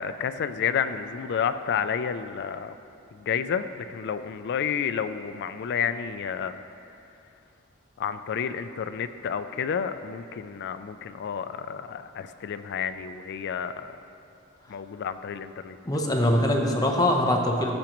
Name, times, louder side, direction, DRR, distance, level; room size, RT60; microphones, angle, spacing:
voice 1, 0.0-2.8 3.1-6.6 8.0-14.0 14.7-15.8, left 7 dB, 55° left, 11 dB, 0.3 m, -30 dB
voice 2, 15.9-17.7, left 1 dB, 20° left, 1 dB, 0.8 m, -23 dB
13.5 x 7.0 x 3.0 m, 2.6 s
head